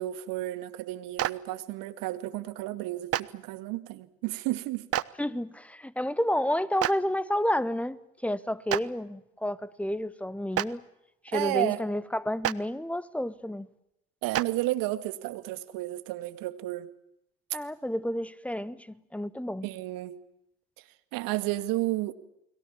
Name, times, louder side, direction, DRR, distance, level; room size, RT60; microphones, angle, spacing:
voice 1, 0.0-4.9 11.3-11.8 14.2-16.9 19.6-20.2 21.1-22.1, right 16 dB, 55° right, 2.3 m, -32 dB
Clapping, 1.2-1.3 3.1-3.2 4.9-5.0 6.8-6.9 8.7-8.8 10.5-10.6 12.4-12.5 14.3-14.4, right 13 dB, 35° right, 1.0 m, -26 dB
voice 2, 5.2-8.0 8.2-10.8 11.2-13.7 17.5-18.9 19.1-19.7, left 1 dB, 5° left, 1.2 m, -30 dB
30.0 x 22.0 x 7.3 m
hypercardioid pair, 85°, 40 cm